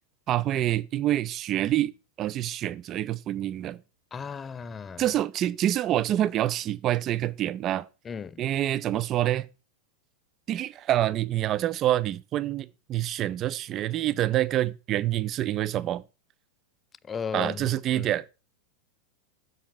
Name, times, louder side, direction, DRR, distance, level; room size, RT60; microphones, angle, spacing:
voice 1, 0.3-1.9 2.2-3.8 5.0-7.9 8.4-9.5 10.5-16.0 17.3-18.2, right 13 dB, 30° right, 0.5 m, -26 dB
voice 2, 4.1-5.1 8.0-8.4 17.0-18.1, left 6 dB, 20° left, 0.5 m, -36 dB
7.2 x 5.6 x 6.9 m
figure-of-eight pair, 90°, 0 cm